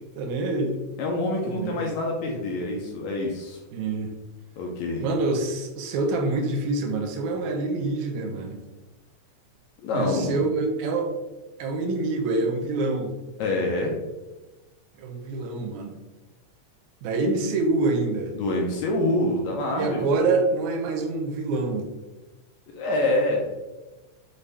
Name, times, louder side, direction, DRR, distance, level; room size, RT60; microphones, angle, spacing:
voice 1, 0.2-0.8 1.5-1.8 3.7-4.1 5.0-8.6 9.9-11.1 11.6-13.2 14.9-16.0 17.0-18.3 19.8-21.9, right 3 dB, 80° right, 3 dB, 2.0 m, -26 dB
voice 2, 1.0-3.6 4.6-5.0 9.8-10.4 13.4-13.9 18.4-20.1 22.7-23.5, left 1 dB, 75° left, 0 dB, 1.9 m, -26 dB
5.4 x 2.6 x 3.3 m, 1.1 s
omnidirectional pair, 3.4 m